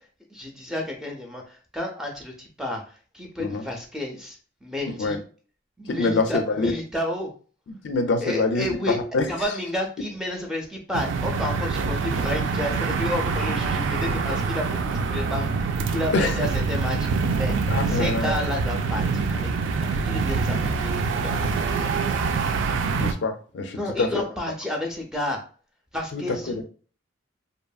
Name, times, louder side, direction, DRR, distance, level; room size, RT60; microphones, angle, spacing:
voice 1, 0.3-5.2 5.8-7.3 8.2-9.0 9.3-21.9 23.7-25.4 25.9-26.6, left 1 dB, 5° right, 0.4 m, -31 dB
voice 2, 5.9-6.7 7.8-8.7 9.1-9.3 16.1-16.3 17.7-18.3 23.0-24.1 26.1-26.2 26.5-26.6, left 3 dB, 65° left, 0.4 m, -25 dB
sound 1, 10.9-23.1, right 4 dB, 70° right, 0.3 m, -25 dB
2.7 x 2.4 x 2.3 m
head